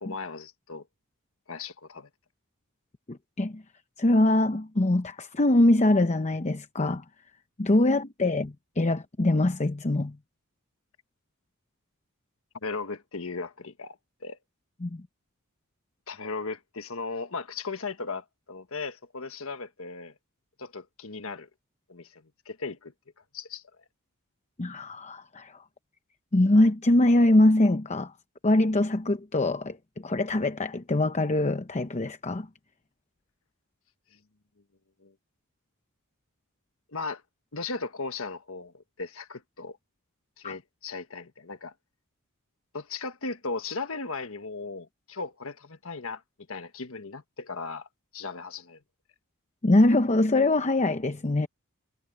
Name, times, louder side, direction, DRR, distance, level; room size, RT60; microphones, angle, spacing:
voice 1, 0.0-0.8 1.5-2.1 12.6-14.4 16.1-20.1 20.6-21.5 21.9-22.9 23.3-23.6 35.0-35.1 36.9-37.2 37.5-39.8 40.4-41.7 42.7-46.2 46.5-47.9 48.1-48.8, left 4 dB, 65° left, 1.6 m, -37 dB
voice 2, 3.1-3.6 4.0-7.0 7.6-10.2 14.8-15.0 24.6-25.6 26.3-28.1 28.4-32.5 40.4-40.5 49.6-51.5, left 1 dB, 30° left, 0.8 m, -23 dB
head